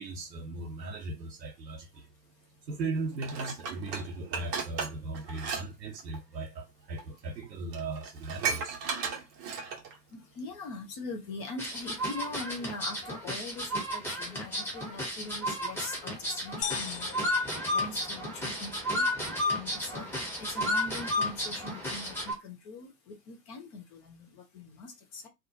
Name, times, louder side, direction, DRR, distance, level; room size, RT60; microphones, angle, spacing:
voice 1, 0.0-2.1 2.6-8.8, right 3 dB, 85° right, 0.6 m, -38 dB
Dishes pots and pans, 3.2-5.6 5.9-6.2 7.0-7.1 7.4-7.5 7.7-9.9 10.4-10.5, right 5 dB, 25° right, 0.6 m, -35 dB
voice 2, 10.1-17.3 17.7-20.1 20.4-25.3, left 3 dB, 20° left, 0.4 m, -42 dB
sound 1, 11.6-22.3, left 1 dB, 5° left, 1.0 m, -33 dB
sound 2, 16.6-18.6, left 9 dB, 70° left, 0.7 m, -39 dB
2.4 x 2.1 x 2.7 m
figure-of-eight pair, 100°, 49 cm